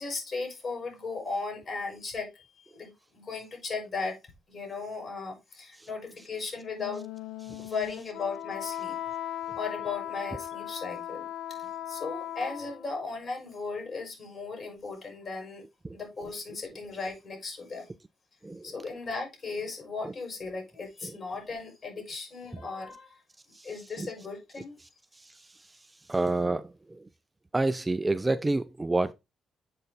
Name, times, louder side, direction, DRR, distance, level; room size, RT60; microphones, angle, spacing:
voice 1, 0.0-4.2 4.5-7.0 7.6-9.0 9.6-15.6 15.9-18.0 18.6-23.2 23.6-24.7, left 4 dB, 45° left, 5.4 m, -37 dB
Wind instrument woodwind instrument, 6.7-13.0, left 11 dB, 85° left, 0.6 m, -38 dB
voice 2, 26.1-27.0 27.5-29.1, right 2 dB, 15° right, 0.4 m, -29 dB
7.7 x 5.5 x 4.0 m
cardioid pair, 90°, 0 cm